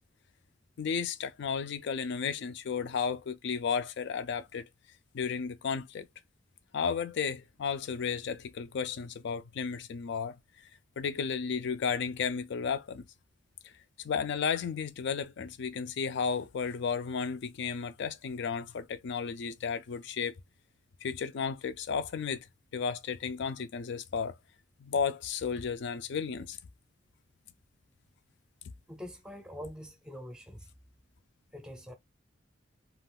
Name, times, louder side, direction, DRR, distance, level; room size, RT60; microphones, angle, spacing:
voice 1, 0.8-4.7 5.1-6.1 6.7-10.7 11.0-13.0 13.6-13.7 14.0-20.4 21.0-22.5 22.7-24.4 24.8-26.6, left 6 dB, 60° left, 0.4 m, -33 dB
voice 2, 28.9-30.7 31.5-31.9, equal, 5° right, 0.6 m, -44 dB
2.4 x 2.3 x 3.4 m
head